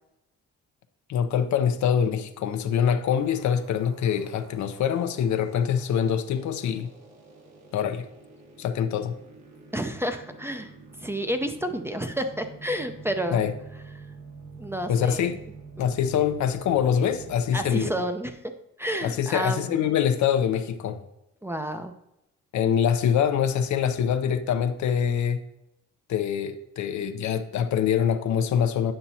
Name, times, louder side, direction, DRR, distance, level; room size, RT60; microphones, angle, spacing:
voice 1, 1.1-6.9 7.7-8.0 8.6-9.2 13.3-13.5 14.9-15.4 15.8-17.9 19.0-21.0 22.5-25.4 26.1-28.9, left 8 dB, 70° left, 0.6 m, -24 dB
sound 1, 3.1-17.7, right 4 dB, 65° right, 1.6 m, -47 dB
voice 2, 9.7-10.7 11.0-13.4 14.6-15.3 17.5-18.3 18.8-19.9 21.4-21.9, equal, 10° right, 0.5 m, -30 dB
8.9 x 5.9 x 2.8 m
cardioid pair, 90°, 30 cm